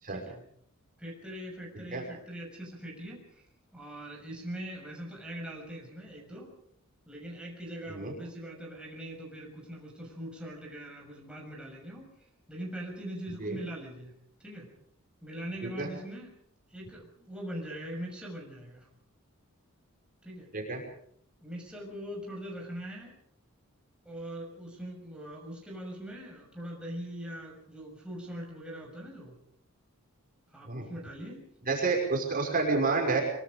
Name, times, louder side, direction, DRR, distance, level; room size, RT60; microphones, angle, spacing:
voice 1, 0.1-0.4 1.0-3.4 3.7-6.5 7.1-14.1 14.4-14.7 15.2-16.3 16.7-18.9 20.2-20.5 21.4-23.1 24.0-29.3 30.5-31.4, right 1 dB, 5° right, -1 dB, 6.4 m, -42 dB
voice 2, 31.7-33.2, right 3 dB, 40° right, 1 dB, 5.7 m, -29 dB
24.5 x 24.0 x 5.2 m, 0.66 s
head